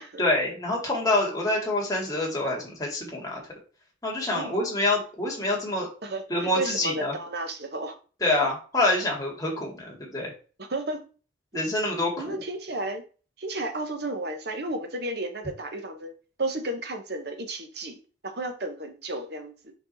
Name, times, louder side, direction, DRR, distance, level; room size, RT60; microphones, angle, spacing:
voice 1, 0.2-3.4 4.0-5.9 6.3-7.1 8.2-10.3 11.5-12.4, left 2 dB, 20° left, -2 dB, 2.1 m, -26 dB
voice 2, 4.3-4.7 6.0-7.9 10.6-11.0 12.2-13.0 13.4-16.1 16.4-18.0 18.2-19.7, right 2 dB, 60° right, 6 dB, 1.1 m, -33 dB
4.8 x 4.7 x 4.1 m, 0.37 s
head